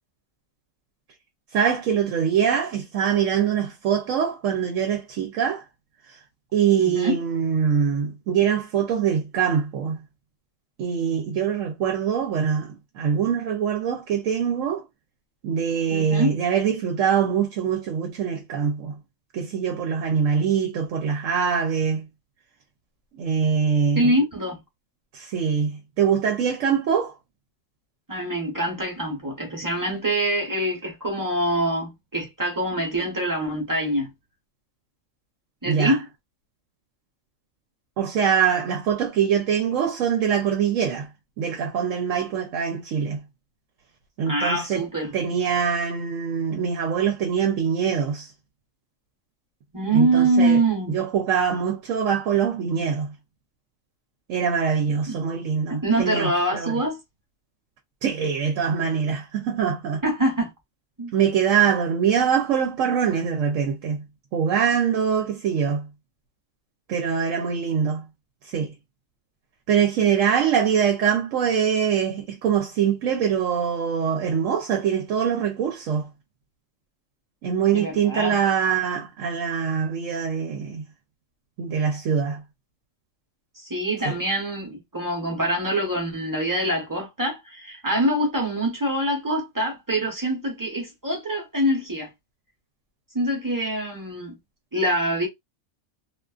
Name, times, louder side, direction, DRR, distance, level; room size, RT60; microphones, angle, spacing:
voice 1, 1.5-5.6 6.5-10.0 10.8-14.8 15.4-19.0 19.3-22.0 23.1-24.1 25.1-27.1 35.6-35.9 38.0-41.1 41.4-43.2 44.2-44.9 45.1-48.3 49.9-50.6 50.9-53.1 54.3-56.8 58.0-60.0 61.1-64.0 64.3-65.9 66.9-68.0 68.4-68.7 69.7-76.1 77.4-80.8 81.6-82.4 84.0-84.1, right 7 dB, 80° right, 1.0 m, -23 dB
voice 2, 6.8-7.2 15.9-16.4 23.9-24.6 28.1-34.1 35.6-36.1 44.3-45.1 49.7-51.0 55.1-55.2 55.7-57.0 60.0-60.5 61.0-61.1 77.7-78.4 83.6-92.1 93.1-94.3 94.7-95.3, right 1 dB, 20° right, 0.8 m, -24 dB
2.4 x 2.4 x 2.3 m
omnidirectional pair, 1.3 m